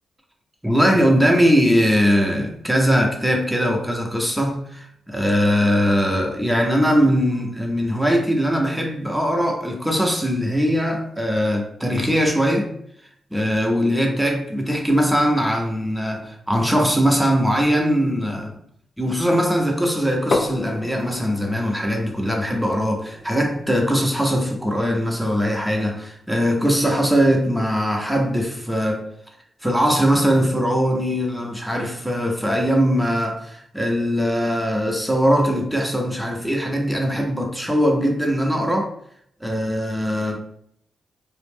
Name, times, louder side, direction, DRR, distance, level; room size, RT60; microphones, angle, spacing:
voice 1, 0.6-12.7 13.3-18.6 19.0-29.1 29.6-38.9 39.4-40.4, equal, 5° right, 0.7 m, -21 dB
sound 1, 20.3-26.0, left 2 dB, 45° left, 0.4 m, -32 dB
2.4 x 2.0 x 3.4 m
supercardioid pair, 45°, 0 cm